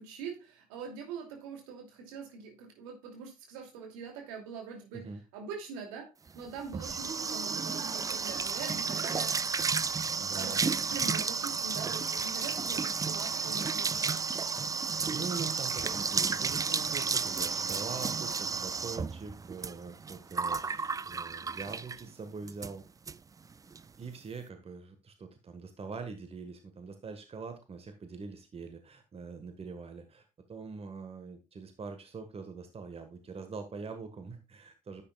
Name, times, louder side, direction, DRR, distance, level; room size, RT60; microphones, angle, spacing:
voice 1, 0.0-9.4 10.4-14.2, right 5 dB, 75° right, 3 dB, 2.6 m, -43 dB
sound 1, 6.3-22.1 22.5-22.7 23.1-23.2 23.4-23.8, right 5 dB, 20° right, 0.4 m, -32 dB
voice 2, 10.2-10.6 14.8-22.8 24.0-35.0, right 4 dB, 35° right, 8 dB, 1.5 m, -43 dB
10.0 x 8.7 x 2.3 m, 0.27 s
hypercardioid pair, 50°, 18 cm